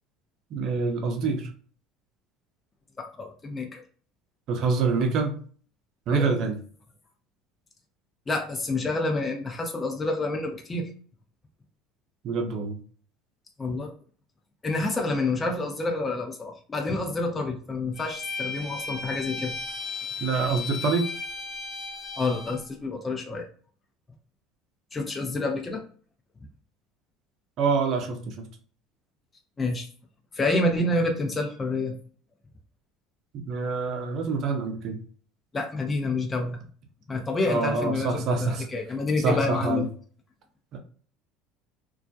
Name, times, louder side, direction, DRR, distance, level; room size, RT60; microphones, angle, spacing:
voice 1, 0.5-1.5 4.5-5.4 6.1-6.6 12.2-12.8 20.2-21.1 27.6-28.3 33.3-35.0 37.5-38.7 39.2-39.8 40.7-40.8, right 4 dB, 55° right, 4 dB, 0.6 m, -26 dB
voice 2, 3.0-3.8 6.1-6.3 8.3-10.9 13.6-13.9 14.6-19.5 22.2-23.5 24.9-25.8 29.6-29.9 30.3-32.0 35.5-36.6 37.1-39.9, left 2 dB, 25° left, 2 dB, 0.5 m, -28 dB
Bowed string instrument, 18.0-22.6, left 4 dB, 45° left, 1.0 m, -35 dB
2.3 x 2.1 x 2.6 m, 0.43 s
hypercardioid pair, 75°, 0 cm